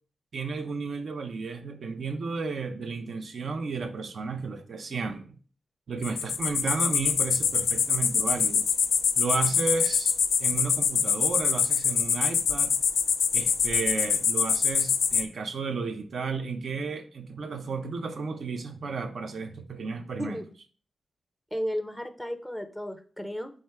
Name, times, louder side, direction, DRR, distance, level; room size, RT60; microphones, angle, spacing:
voice 1, 0.3-5.3 5.9-8.7 9.2-10.1 10.4-12.8 13.3-20.4, right 4 dB, 65° right, 0.5 m, -33 dB
sound 1, 6.0-15.2, left 6 dB, 80° left, 0.3 m, -25 dB
voice 2, 21.5-23.5, equal, ahead, 0.5 m, -33 dB
4.4 x 3.6 x 3.3 m
wide cardioid pair, 100°, 0 cm